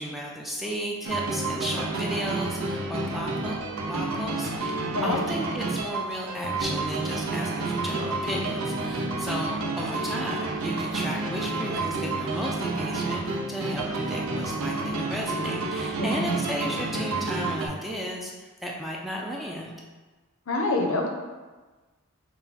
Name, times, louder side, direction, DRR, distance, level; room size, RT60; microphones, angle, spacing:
voice 1, 0.0-3.6 3.9-19.7, equal, ahead, -2 dB, 0.3 m, -34 dB
sound 1, 1.0-17.7, right 3 dB, 75° right, 0.6 m, -30 dB
voice 2, 4.9-5.2 16.0-16.4 20.5-21.1, left 2 dB, 65° left, 1 dB, 0.7 m, -26 dB
5.8 x 2.2 x 4.1 m, 1.3 s
head